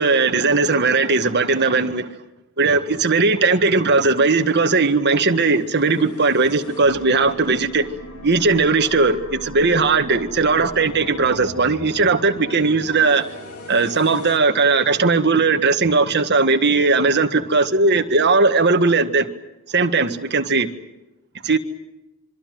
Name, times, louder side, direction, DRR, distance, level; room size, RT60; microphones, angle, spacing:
voice 1, 0.0-2.1 2.6-7.9 8.2-13.2 13.7-19.3 19.7-20.7 21.4-21.6, right 3 dB, 50° right, 1.7 m, -18 dB
sound 1, 5.4-15.6, left 1 dB, 75° left, 3.9 m, -38 dB
26.5 x 24.5 x 7.8 m
head